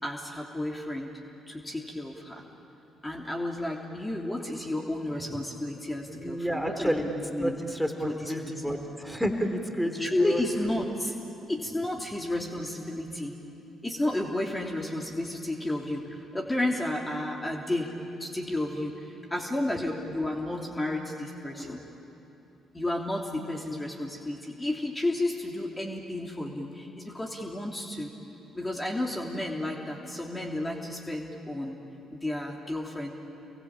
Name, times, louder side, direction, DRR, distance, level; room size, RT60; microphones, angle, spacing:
voice 1, 0.0-1.1 1.5-2.4 3.0-7.0 7.3-7.6 8.1-8.3 8.6-8.8 10.0-11.1 11.5-13.4 13.8-21.8 22.7-28.1 28.5-31.8 32.1-33.1, left 1 dB, 15° left, 0 dB, 3.2 m, -32 dB
voice 2, 6.1-7.1 7.4-10.4, equal, ahead, 4 dB, 3.5 m, -30 dB
28.5 x 23.0 x 8.9 m, 3.0 s
hypercardioid pair, 50°, 0 cm